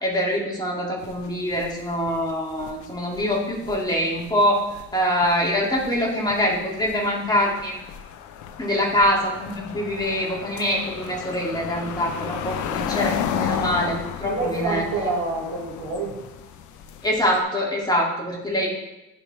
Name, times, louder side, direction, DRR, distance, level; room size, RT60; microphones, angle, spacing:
voice 1, 0.0-4.6 4.9-7.8 8.6-14.8 17.0-18.7, equal, 10° left, 2.3 m, -24 dB
sound 1, 1.0-17.4, left 8 dB, 65° left, 0.7 m, -34 dB
voice 2, 14.2-16.2, right 3 dB, 65° right, 1.9 m, -27 dB
9.3 x 4.6 x 3.3 m
supercardioid pair, 70°, 32 cm